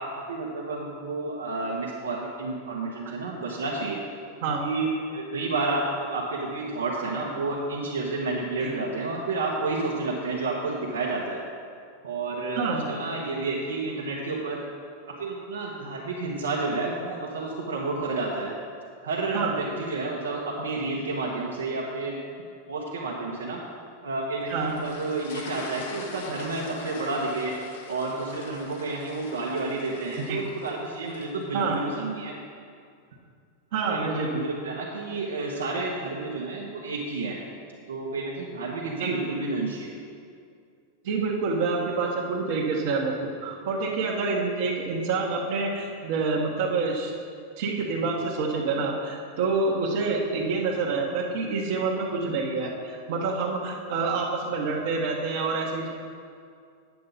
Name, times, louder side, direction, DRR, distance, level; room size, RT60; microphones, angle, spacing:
voice 1, 0.0-4.0 4.6-11.4 12.0-14.6 15.1-18.5 19.0-22.2 22.7-23.6 24.0-27.5 27.9-32.3 33.9-37.4 37.9-39.9 48.8-48.9, right 3 dB, 85° right, -5 dB, 1.3 m, -30 dB
voice 2, 12.5-12.8 19.3-19.5 24.5-24.8 30.3-30.4 31.5-31.8 33.7-34.3 39.0-39.2 41.0-47.1 47.6-55.9, right 4 dB, 65° right, -3 dB, 1.3 m, -27 dB
sound 1, 24.4-31.7, left 3 dB, 75° left, 1.2 m, -42 dB
9.0 x 8.4 x 4.1 m, 2.3 s
hypercardioid pair, 105°, 0 cm